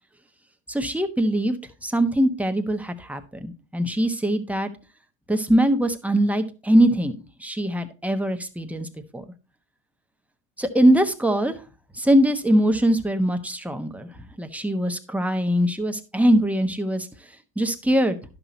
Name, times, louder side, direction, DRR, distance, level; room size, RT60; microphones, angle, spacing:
voice 1, 0.7-1.6 1.8-4.7 5.3-8.9 9.1-9.2 10.6-11.6 11.9-17.1 17.6-18.2, right 1 dB, 5° right, 6 dB, 1.1 m, -22 dB
11.0 x 6.2 x 4.0 m, 0.32 s
supercardioid pair, 90°, 49 cm